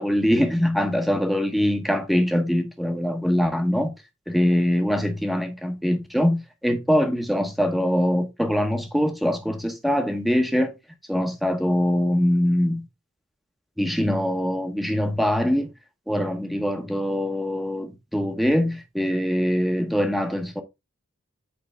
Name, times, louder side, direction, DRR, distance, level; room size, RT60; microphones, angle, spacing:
voice 1, 0.0-3.9 4.3-10.7 11.1-12.8 13.8-15.7 16.1-20.6, equal, ahead, 0.9 m, -23 dB
8.5 x 4.7 x 3.2 m
head